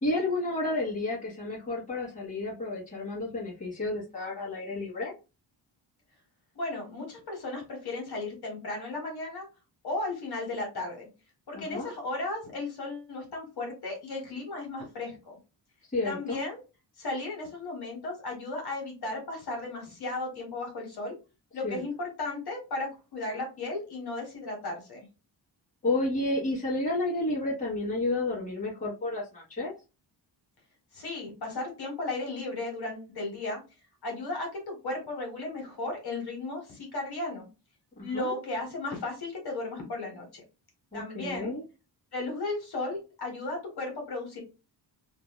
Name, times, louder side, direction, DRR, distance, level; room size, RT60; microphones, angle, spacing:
voice 1, 0.0-5.2 11.5-11.9 15.9-16.4 21.6-21.8 25.8-29.7 38.0-38.4 40.9-41.6, left 2 dB, 15° left, -6 dB, 1.6 m, -31 dB
voice 2, 6.5-9.5 9.8-11.1 11.5-15.4 16.0-16.6 17.0-21.1 21.5-25.1 30.9-33.6 34.0-37.5 38.0-40.4 40.9-41.5 42.1-44.4, left 2 dB, 60° left, 1 dB, 1.5 m, -35 dB
2.9 x 2.8 x 2.2 m, 0.30 s
wide cardioid pair, 150°, 44 cm